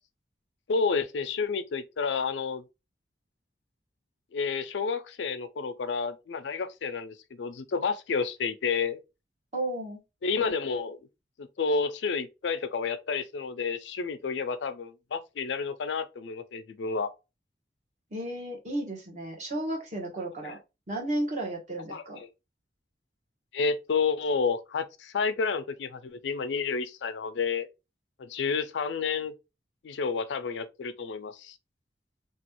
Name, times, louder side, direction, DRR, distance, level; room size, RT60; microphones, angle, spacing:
voice 1, 0.7-2.6 4.3-9.0 10.2-11.0 11.4-17.1 20.4-20.6 21.9-22.3 23.5-27.7 28.2-29.3 29.8-31.5, left 5 dB, 85° left, 0.4 m, -30 dB
voice 2, 9.5-10.0 18.1-20.6 20.9-22.2, right 1 dB, 40° right, 1.1 m, -33 dB
3.0 x 2.3 x 2.9 m
head